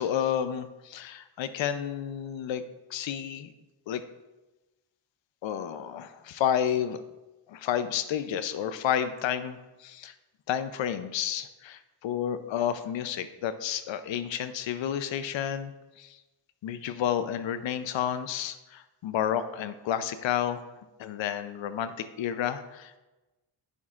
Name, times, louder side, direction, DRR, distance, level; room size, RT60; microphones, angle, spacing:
voice 1, 0.0-2.6 2.9-3.5 3.9-4.0 5.4-7.0 7.5-10.1 10.5-16.2 16.6-20.6 21.0-23.0, left 9 dB, 65° left, 11 dB, 0.6 m, -31 dB
9.8 x 6.2 x 2.5 m, 1.1 s
cardioid pair, 95°, 48 cm